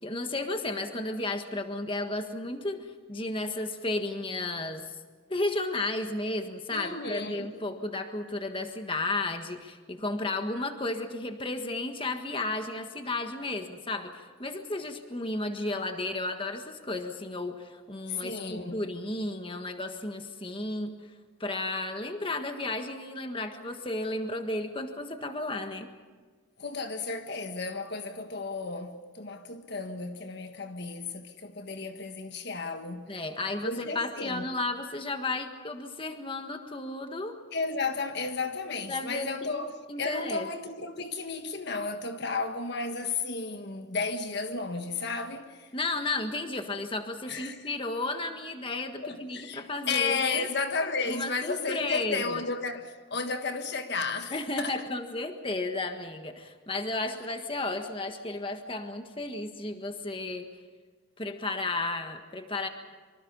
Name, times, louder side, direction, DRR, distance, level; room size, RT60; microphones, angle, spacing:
voice 1, 0.0-4.8 5.3-20.9 21.4-25.9 33.1-37.4 38.9-39.5 39.9-40.5 45.7-50.5 51.1-52.4 54.3-60.5 61.2-62.7, left 2 dB, 25° left, 1.6 m, -33 dB
voice 2, 6.7-7.6 18.1-18.8 26.6-33.2 33.6-34.5 37.5-45.7 47.3-47.7 49.0-54.8, left 4 dB, 55° left, 1.5 m, -33 dB
25.0 x 25.0 x 5.5 m
head